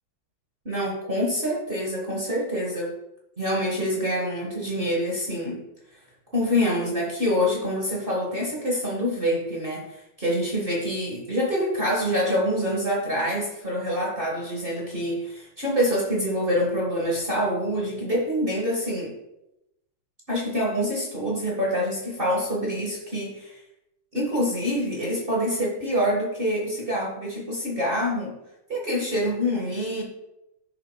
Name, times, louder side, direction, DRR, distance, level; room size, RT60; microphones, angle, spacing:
voice 1, 0.6-2.9 3.4-5.6 6.3-19.1 20.3-23.6 24.1-28.3 28.7-30.0, equal, 40° right, -3 dB, 0.8 m, -26 dB
11.5 x 6.8 x 2.3 m, 0.90 s
omnidirectional pair, 3.4 m